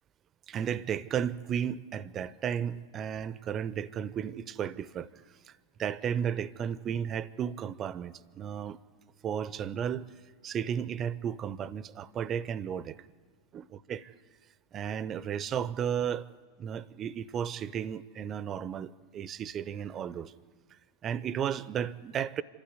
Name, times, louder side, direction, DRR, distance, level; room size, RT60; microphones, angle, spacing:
voice 1, 0.5-5.1 5.8-8.8 9.2-10.0 10.4-12.9 13.5-14.1 14.7-16.3 16.6-20.3 21.0-22.4, right 8 dB, 30° right, 19 dB, 0.6 m, -34 dB
26.0 x 12.5 x 9.6 m, 1.6 s
figure-of-eight pair, 90°, 0 cm